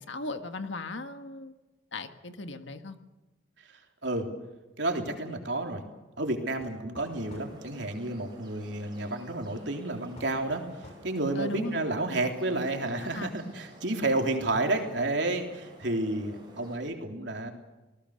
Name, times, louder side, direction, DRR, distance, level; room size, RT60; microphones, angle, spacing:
voice 1, 0.0-1.5 1.9-3.0 11.4-11.9 13.0-13.3, left 2 dB, 70° left, 8 dB, 1.6 m, -37 dB
voice 2, 4.8-5.8 6.2-10.6 11.0-17.5, right 2 dB, 65° right, 3 dB, 3.4 m, -30 dB
sound 1, 6.6-7.6 10.2-11.1, left 1 dB, 35° left, 5.6 m, -49 dB
sound 2, 7.1-16.8, right 1 dB, 25° right, 6.9 m, -52 dB
27.0 x 19.5 x 6.6 m, 1.1 s
head